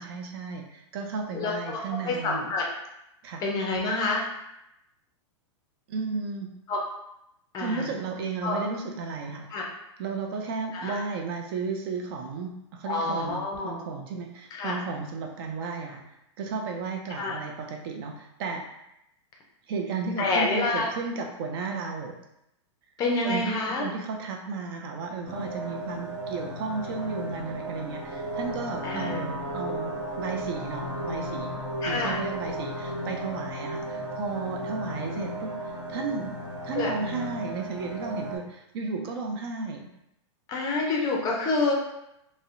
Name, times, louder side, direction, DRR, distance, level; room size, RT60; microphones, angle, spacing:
voice 1, 0.0-2.5 3.2-3.4 5.9-6.5 7.6-9.5 10.0-16.0 16.4-18.6 19.7-22.2 23.2-29.9 30.2-31.6 31.9-36.4 36.6-39.9, right 4 dB, 50° right, 2 dB, 0.4 m, -34 dB
voice 2, 1.3-2.7 3.4-4.2 6.7-6.8 7.5-7.9 8.4-8.6 9.5-9.6 10.7-11.0 12.9-13.8 14.5-14.8 17.2-17.4 20.2-20.9 23.0-23.8 28.8-29.2 31.8-32.2 36.7-36.9 40.5-41.7, left 3 dB, 25° left, -1 dB, 0.5 m, -28 dB
sound 1, 25.2-38.4, equal, 80° right, 1.0 m, -34 dB
2.6 x 2.0 x 2.5 m, 0.84 s
hypercardioid pair, 140°, 16 cm